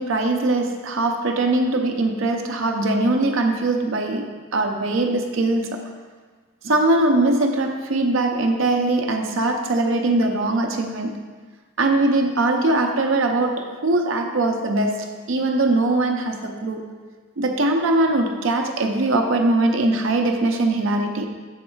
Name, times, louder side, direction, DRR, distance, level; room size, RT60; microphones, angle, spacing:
voice 1, 0.0-5.8 6.6-11.1 11.8-16.9 17.4-21.3, right 2 dB, 65° right, 4 dB, 0.6 m, -21 dB
7.2 x 3.1 x 4.6 m, 1.4 s
head